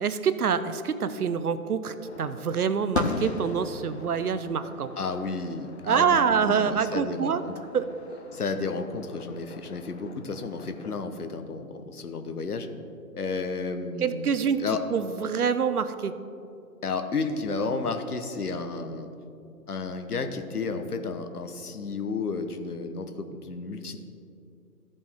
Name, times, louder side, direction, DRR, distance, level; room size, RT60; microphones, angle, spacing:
voice 1, 0.0-4.9 5.9-7.4 7.7-7.9 14.0-14.6 14.9-16.1, right 6 dB, 70° right, 12 dB, 0.7 m, -26 dB
sound 1, 2.0-10.9, left 4 dB, 45° left, 0.6 m, -38 dB
voice 2, 5.0-7.5 8.3-12.7 13.1-14.8 16.8-19.1 19.7-24.0, left 4 dB, 75° left, 7 dB, 1.0 m, -32 dB
14.0 x 5.3 x 3.5 m, 2.6 s
figure-of-eight pair, 145°, 46 cm